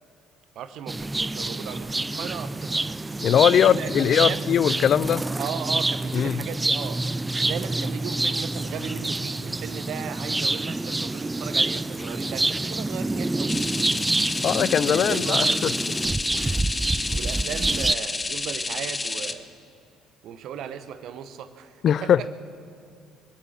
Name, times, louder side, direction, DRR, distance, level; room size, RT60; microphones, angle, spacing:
voice 1, 0.5-2.8 3.5-4.5 5.4-7.0 7.4-13.5 14.9-15.6 16.3-19.5 20.2-22.3, right 8 dB, 65° right, 11 dB, 1.0 m, -37 dB
sound 1, 0.9-17.9, right 2 dB, 15° right, 0.4 m, -27 dB
voice 2, 3.2-5.2 6.1-6.4 14.4-15.7 21.8-22.3, left 9 dB, 55° left, 20 dB, 0.4 m, -21 dB
sound 2, 13.5-19.3, left 3 dB, 25° left, 1.0 m, -30 dB
22.0 x 8.8 x 7.4 m, 2.3 s
hypercardioid pair, 55°, 0 cm